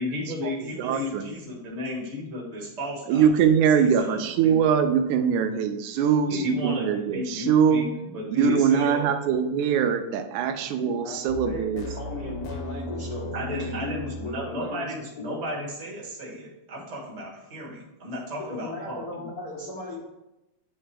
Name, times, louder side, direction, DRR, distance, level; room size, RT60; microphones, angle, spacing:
voice 1, 0.0-3.3 3.7-4.7 6.3-9.0 13.3-19.3, left 1 dB, 45° right, -4 dB, 0.5 m, -34 dB
voice 2, 0.8-1.3 3.1-7.9 8.3-11.9, right 7 dB, 85° right, 8 dB, 1.9 m, -22 dB
voice 3, 10.8-15.3 18.5-20.0, left 2 dB, 90° left, -4 dB, 0.8 m, -37 dB
sound 1, 11.3-14.5, left 1 dB, 70° left, 1.4 m, -36 dB
9.6 x 3.2 x 3.3 m, 0.94 s
omnidirectional pair, 3.4 m